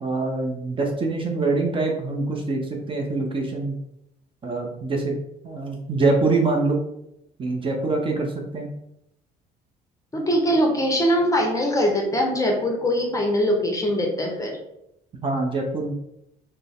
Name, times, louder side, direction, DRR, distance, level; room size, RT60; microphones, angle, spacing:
voice 1, 0.0-3.7 4.4-5.2 5.4-6.8 7.4-8.7 15.2-15.9, right 3 dB, 30° right, 1 dB, 0.6 m, -24 dB
voice 2, 10.1-14.6, equal, 20° left, 1 dB, 0.7 m, -22 dB
4.0 x 2.1 x 3.6 m, 0.82 s
cardioid pair, 110°, 17 cm